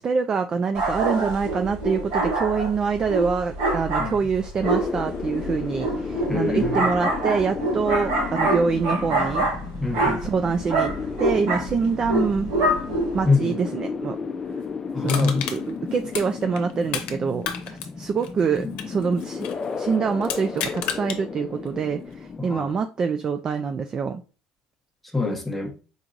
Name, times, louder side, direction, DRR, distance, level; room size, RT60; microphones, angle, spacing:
voice 1, 0.0-9.5 10.2-10.9 11.2-12.5 13.1-14.2 15.0-19.5 19.8-24.2, right 5 dB, 35° right, 0.4 m, -25 dB
sound 1, 0.7-13.3, right 2 dB, 85° right, 2.4 m, -26 dB
sound 2, 4.6-22.4, left 5 dB, 30° left, 0.5 m, -33 dB
voice 2, 6.3-6.8 9.8-10.3 13.2-13.6 14.9-15.5 18.6-18.8 22.4-22.7 25.1-25.7, left 3 dB, 5° left, 1.1 m, -24 dB
Crushing, 15.1-17.2 17.4-19.6 20.2-21.2 21.7-21.8, left 8 dB, 75° left, 0.8 m, -31 dB
4.5 x 4.0 x 2.5 m
cardioid pair, 105°, 2 cm